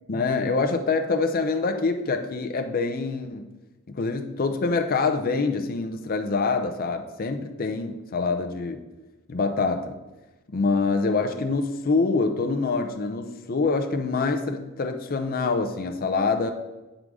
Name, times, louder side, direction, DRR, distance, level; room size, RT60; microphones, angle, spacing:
voice 1, 0.1-3.5 3.9-8.8 9.3-10.0 10.5-16.5, left 4 dB, 45° left, 5 dB, 0.6 m, -25 dB
9.1 x 3.8 x 4.8 m, 1.1 s
head